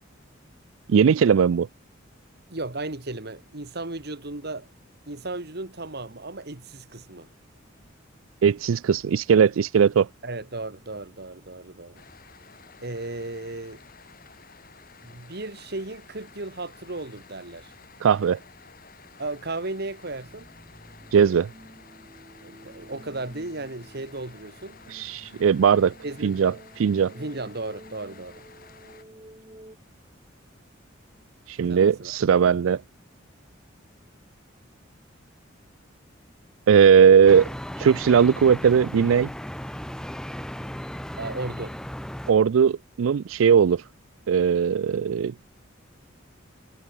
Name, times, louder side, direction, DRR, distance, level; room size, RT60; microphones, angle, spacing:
voice 1, 0.9-1.7 8.4-10.1 18.0-18.4 21.1-21.5 24.9-25.9 26.2-27.1 31.5-32.8 36.7-37.5 37.8-39.3 42.3-43.8 44.3-45.3, right 7 dB, 80° right, 0.4 m, -19 dB
voice 2, 2.5-4.7 5.1-7.3 10.2-12.0 12.8-13.8 15.0-17.7 19.2-20.5 22.4-24.8 26.0-26.4 27.1-28.4 31.7-32.2 41.2-41.8, right 2 dB, 55° right, 2.1 m, -35 dB
sound 1, 11.9-29.0, left 5 dB, 45° left, 7.5 m, -52 dB
sound 2, 20.0-29.8, right 1 dB, 25° right, 3.1 m, -50 dB
sound 3, 37.3-42.3, equal, 5° left, 0.6 m, -36 dB
head